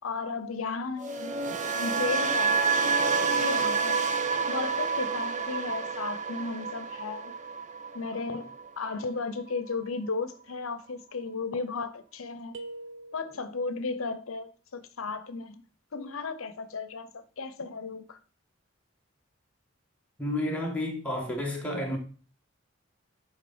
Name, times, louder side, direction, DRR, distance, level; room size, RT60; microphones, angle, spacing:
voice 1, 0.0-2.7 3.0-4.1 4.5-7.3 7.9-12.6 13.1-15.6 15.9-18.2, left 4 dB, 85° left, 0.8 m, -35 dB
sound 1, 1.0-9.1 9.4-9.7, right 4 dB, 35° right, 0.6 m, -29 dB
sound 2, 12.5-13.7, right 2 dB, 65° right, 0.9 m, -43 dB
voice 2, 20.2-22.0, left 1 dB, 5° left, 1.7 m, -32 dB
10.0 x 3.9 x 4.3 m
head